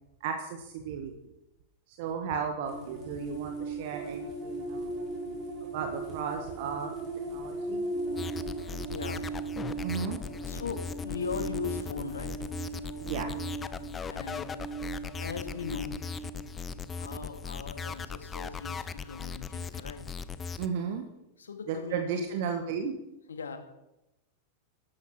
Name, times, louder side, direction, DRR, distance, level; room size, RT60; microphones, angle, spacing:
voice 1, 0.2-1.1 1.9-4.9 5.7-6.9 7.3-7.9 9.8-10.2 13.0-13.3 20.6-21.0 21.7-22.9, right 6 dB, 50° right, 5 dB, 1.5 m, -34 dB
sound 1, 2.6-19.1, right 3 dB, 25° right, 5.9 m, -38 dB
sound 2, 8.2-20.7, left 6 dB, 20° left, 0.8 m, -38 dB
voice 2, 8.9-9.5 10.4-12.5 14.1-14.5 15.2-16.0 16.9-20.2 21.4-22.4 23.3-23.6, left 6 dB, 70° left, 7 dB, 2.2 m, -39 dB
13.5 x 12.0 x 6.1 m, 0.91 s
figure-of-eight pair, 90°, 0 cm